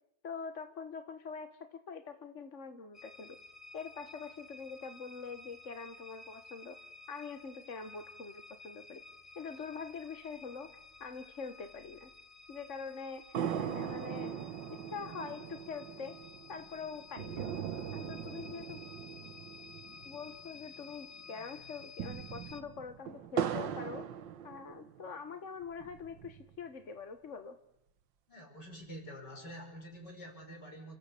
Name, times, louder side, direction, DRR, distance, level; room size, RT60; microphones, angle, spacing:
voice 1, 0.2-3.4 3.7-6.8 7.1-9.0 9.3-12.1 12.5-14.4 14.7-16.2 16.5-17.5 17.9-18.8 20.0-24.1 24.4-27.6, left 5 dB, 45° left, 8 dB, 1.5 m, -44 dB
sound 1, 2.9-22.6, left 4 dB, 25° left, 0.9 m, -54 dB
sound 2, 13.3-20.9 21.2-21.3 21.8-25.1 25.6-26.6, right 8 dB, 75° right, 1.8 m, -40 dB
voice 2, 28.3-31.0, equal, 65° left, 1 dB, 6.6 m, -48 dB
29.5 x 15.5 x 8.4 m, 0.78 s
omnidirectional pair, 2.0 m